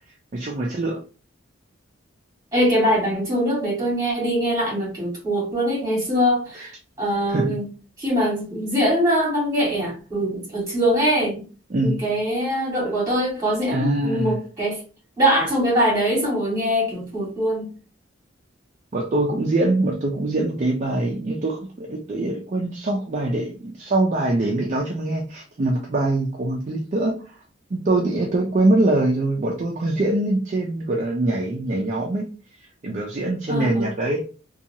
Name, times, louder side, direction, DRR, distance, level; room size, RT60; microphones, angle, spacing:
voice 1, 0.3-1.0 6.6-6.7 7.3-7.5 11.7-12.0 13.7-14.4 18.9-27.4 27.7-32.2 32.8-34.3, right 2 dB, 35° right, 0.4 m, -23 dB
voice 2, 2.5-7.6 8.0-11.4 11.8-14.8 15.2-17.7 33.5-34.0, equal, 15° right, 1.4 m, -22 dB
2.8 x 2.3 x 2.6 m
head